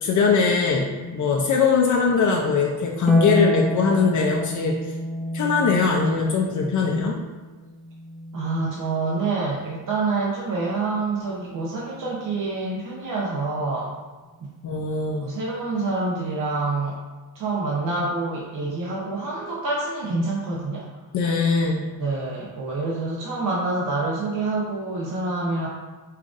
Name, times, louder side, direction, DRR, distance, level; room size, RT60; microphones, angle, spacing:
voice 1, 0.0-4.9 5.3-7.2 14.6-15.3 21.1-21.9, left 5 dB, 55° left, 0 dB, 0.5 m, -21 dB
Harp, 3.1-9.6 11.2-12.2, equal, ahead, 0.4 m, -30 dB
voice 2, 8.3-13.9 15.2-17.0 17.3-20.8 22.0-25.7, right 3 dB, 65° right, -4 dB, 0.7 m, -27 dB
5.5 x 2.4 x 2.5 m, 1.3 s
cardioid pair, 95°, 35 cm